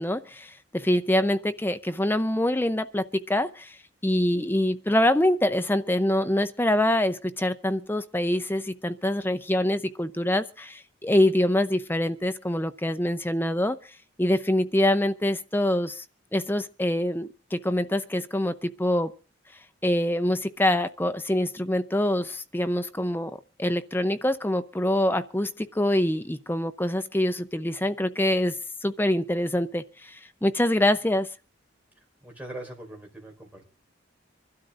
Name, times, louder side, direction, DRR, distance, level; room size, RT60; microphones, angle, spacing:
voice 1, 0.0-3.8 4.0-13.8 14.2-16.0 16.3-19.1 19.8-28.6 28.8-31.3, left 1 dB, 10° left, 0.7 m, -25 dB
voice 2, 32.2-33.7, right 1 dB, 10° right, 5.0 m, -41 dB
25.5 x 12.5 x 2.6 m
head